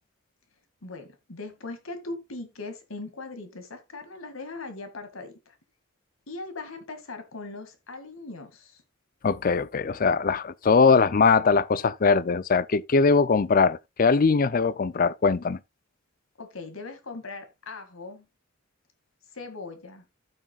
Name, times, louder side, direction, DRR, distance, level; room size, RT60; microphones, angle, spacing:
voice 1, 0.8-5.6 6.3-8.8 16.4-18.3 19.3-20.0, left 3 dB, 85° left, 2.1 m, -40 dB
voice 2, 9.2-15.6, left 4 dB, 45° left, 0.5 m, -21 dB
15.0 x 6.2 x 2.3 m
head